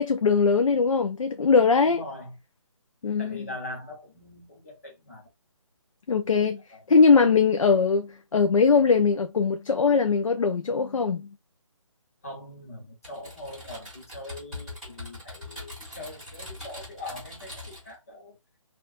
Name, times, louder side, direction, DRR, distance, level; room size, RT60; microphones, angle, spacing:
voice 1, 0.0-2.0 3.0-3.5 6.1-6.6 6.9-11.3, left 5 dB, 85° left, 0.6 m, -21 dB
voice 2, 1.8-2.4 3.2-5.3 6.7-7.3 12.2-18.4, left 1 dB, 25° left, 1.1 m, -41 dB
Typing, 13.0-17.9, left 2 dB, ahead, 1.6 m, -42 dB
4.4 x 2.5 x 2.5 m
hypercardioid pair, 180°, 17 cm